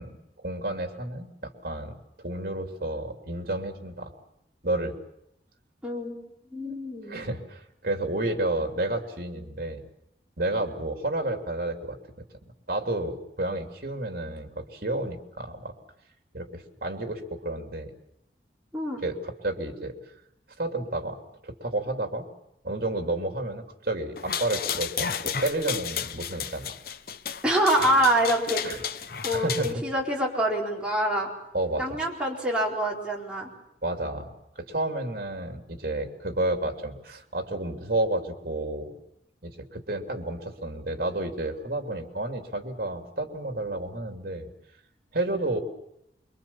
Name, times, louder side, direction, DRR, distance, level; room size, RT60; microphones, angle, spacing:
voice 1, 0.0-4.1 4.6-4.9 7.1-9.8 10.4-12.0 12.7-15.7 16.3-17.9 19.0-19.9 20.6-21.2 21.4-22.3 22.6-26.7 28.6-28.8 29.3-29.8 31.5-32.0 33.8-34.3 34.6-38.9 39.4-44.5 45.1-45.6, right 2 dB, 55° right, 4 dB, 3.0 m, -31 dB
voice 2, 5.8-6.2 6.5-7.2 18.7-19.0 27.4-28.6 29.2-31.3 31.8-33.5, right 1 dB, 5° right, -3 dB, 4.5 m, -25 dB
sound 1, 24.2-29.7, left 7 dB, 55° left, 0.9 m, -33 dB
25.0 x 23.5 x 7.2 m, 0.81 s
head